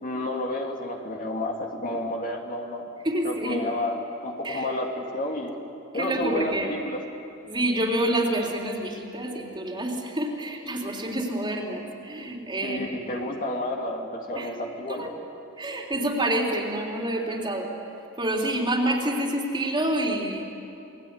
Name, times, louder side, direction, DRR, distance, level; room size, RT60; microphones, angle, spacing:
voice 1, 0.0-2.8 3.2-5.5 5.9-7.0 12.6-15.1, left 1 dB, 40° left, 1 dB, 2.6 m, -30 dB
voice 2, 3.0-3.6 4.4-4.7 5.9-6.7 7.4-13.2 14.4-14.5 14.9-15.1 15.6-17.7 18.2-20.4, right 1 dB, 20° right, 0 dB, 3.5 m, -28 dB
29.0 x 20.5 x 9.7 m, 2.9 s
head